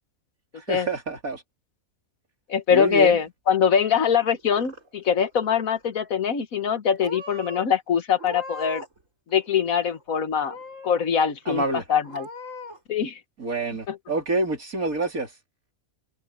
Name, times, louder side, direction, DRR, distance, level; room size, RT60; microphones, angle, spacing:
voice 1, 0.6-1.4 2.7-3.2 11.5-11.8 13.4-15.3, right 2 dB, 90° right, 4.1 m, -27 dB
voice 2, 2.5-8.9 9.3-10.6 10.8-11.6 11.9-12.3 12.9-13.2 13.9-14.0, left 7 dB, 80° left, 1.8 m, -23 dB
Purr / Meow, 4.2-5.1 5.4-5.9 6.6-6.7 7.0-7.6 8.1-9.0 9.3-10.0 10.4-11.0 11.5-11.6 12.0-12.8, left 1 dB, 65° right, 5.2 m, -40 dB
omnidirectional pair, 1.4 m